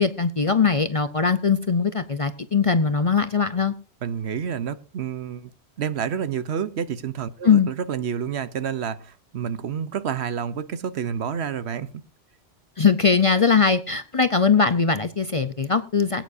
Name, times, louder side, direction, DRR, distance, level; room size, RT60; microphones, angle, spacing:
voice 1, 0.0-3.7 7.4-7.7 12.8-16.2, left 5 dB, 35° left, 0.6 m, -20 dB
voice 2, 4.0-5.5 5.8-12.0, right 7 dB, 70° right, 1.1 m, -29 dB
21.5 x 9.1 x 2.6 m
omnidirectional pair, 1.2 m